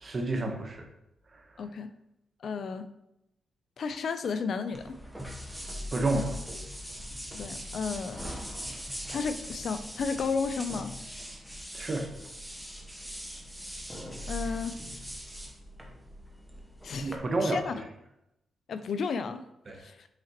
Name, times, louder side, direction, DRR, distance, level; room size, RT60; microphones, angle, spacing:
voice 1, 0.0-0.9 1.3-1.4 5.9-6.4 11.7-12.1 17.0-17.6 19.7-19.8, right 2 dB, 30° right, 3 dB, 0.9 m, -30 dB
voice 2, 1.6-1.9 2.4-2.9 3.8-4.9 7.3-8.2 9.1-10.9 14.3-14.8 16.8-17.1 17.4-17.7 18.7-19.4 19.7-20.1, left 5 dB, 50° left, 10 dB, 0.3 m, -33 dB
sound 1, 4.7-17.2, equal, ahead, 0.8 m, -41 dB
5.8 x 5.8 x 2.9 m, 0.84 s
wide cardioid pair, 165°, 0 cm